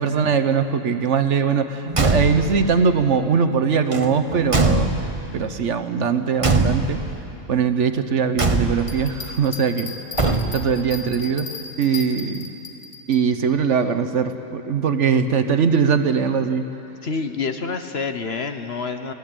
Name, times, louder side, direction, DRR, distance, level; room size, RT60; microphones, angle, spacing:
voice 1, 0.0-4.9 5.3-7.0 7.5-9.9 10.2-11.5 11.8-12.5 13.1-16.7, right 6 dB, 60° right, 9 dB, 1.2 m, -21 dB
Car / Truck / Slam, 1.9-2.6 3.9-5.3 6.4-7.2 8.4-9.0 10.1-10.8, right 3 dB, 25° right, 1.1 m, -22 dB
sound 1, 8.8-13.2, left 5 dB, 70° left, 2.2 m, -36 dB
voice 2, 17.0-19.1, left 4 dB, 50° left, 7 dB, 1.2 m, -27 dB
24.5 x 17.0 x 8.9 m, 2.9 s
omnidirectional pair, 1.5 m